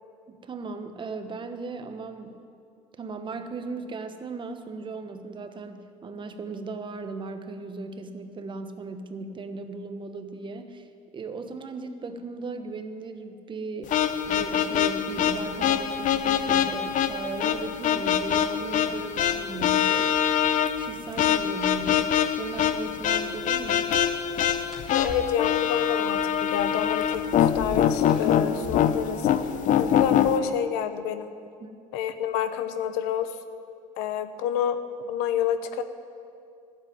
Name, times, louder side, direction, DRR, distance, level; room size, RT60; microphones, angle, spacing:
voice 1, 0.3-2.4 3.0-10.9 11.1-14.0 14.3-23.9 31.6-31.8, right 3 dB, 30° right, 8 dB, 1.0 m, -37 dB
sound 1, 13.9-30.4, left 9 dB, 50° left, 0.7 m, -24 dB
sound 2, 23.0-30.1, left 1 dB, ahead, 3.6 m, -49 dB
voice 2, 24.9-29.3 29.8-31.3 31.9-33.3 34.0-35.8, left 9 dB, 90° left, 10 dB, 0.9 m, -28 dB
12.0 x 7.8 x 9.3 m, 2.4 s
cardioid pair, 110°, 16 cm